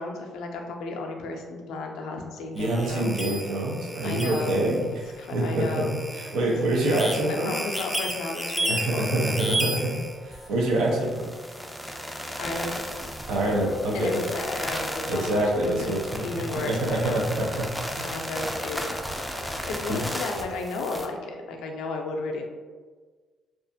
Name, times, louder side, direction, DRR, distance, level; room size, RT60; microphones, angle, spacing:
voice 1, 0.0-3.1 4.0-4.6 5.2-5.9 6.9-7.0 7.3-9.1 12.4-12.8 13.9-17.2 18.0-18.9 19.7-22.4, left 3 dB, 85° left, 2 dB, 0.3 m, -33 dB
voice 2, 2.5-5.8 6.1-7.5 8.7-11.3 13.3-14.2 15.1-17.7 19.9-20.0, right 1 dB, 90° right, -1 dB, 0.5 m, -26 dB
sound 1, 2.6-21.1, right 1 dB, ahead, 0.3 m, -34 dB
2.4 x 2.3 x 2.6 m, 1.5 s
cardioid pair, 90°, 0 cm